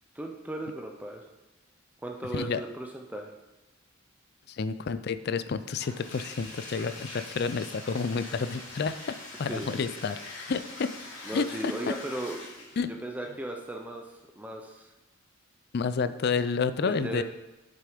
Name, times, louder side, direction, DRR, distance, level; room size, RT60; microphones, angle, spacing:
voice 1, 0.1-1.3 2.0-3.3 9.4-9.9 11.2-14.9 16.8-17.2, right 1 dB, 10° right, 2 dB, 0.6 m, -37 dB
voice 2, 4.5-10.9 11.3-11.7 12.8-12.9 15.7-17.2, left 5 dB, 50° left, 13 dB, 0.4 m, -30 dB
Bathtub (filling or washing), 5.7-12.9, left 2 dB, 75° left, 3.0 m, -44 dB
7.6 x 6.7 x 5.0 m, 1.0 s
head